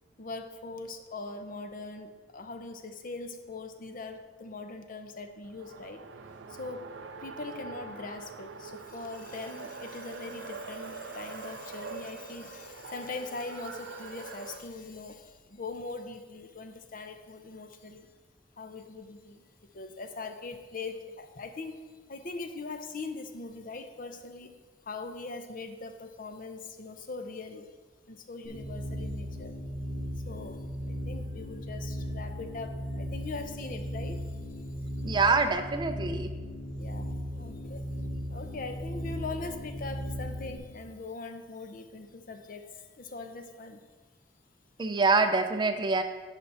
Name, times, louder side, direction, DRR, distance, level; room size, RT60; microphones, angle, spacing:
voice 1, 0.2-6.0 6.5-6.9 7.2-18.1 18.6-24.6 24.8-27.8 28.1-29.6 30.2-34.4 36.8-37.9 38.3-43.8, left 3 dB, 50° left, 7 dB, 0.7 m, -41 dB
Race car auto racing, 5.4-14.7, right 4 dB, 80° right, 0.5 m, -43 dB
sound 1, 28.4-40.6, equal, 80° left, 2.5 m, -37 dB
voice 2, 35.0-36.3 44.8-46.0, right 4 dB, 25° right, 8 dB, 0.5 m, -25 dB
10.0 x 5.3 x 4.2 m, 1.3 s
head